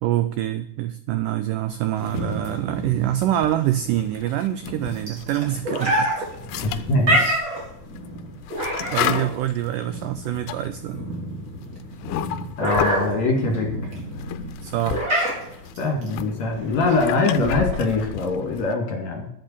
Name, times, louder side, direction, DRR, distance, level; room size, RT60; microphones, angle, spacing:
voice 1, 0.0-6.3 6.5-6.8 8.9-11.1 14.6-15.1, right 13 dB, 80° right, 11 dB, 1.9 m, -25 dB
sound 1, 1.9-2.6 3.1-5.4 5.7-13.1 13.8-15.1 15.3-18.7, left 12 dB, 85° left, 2.7 m, -33 dB
sound 2, 2.0-17.9, right 1 dB, 25° right, 4.2 m, -28 dB
voice 2, 6.6-7.2 12.6-13.7 15.8-19.3, left 3 dB, 50° left, 2 dB, 3.2 m, -23 dB
10.5 x 7.9 x 8.5 m, 0.76 s
omnidirectional pair, 4.5 m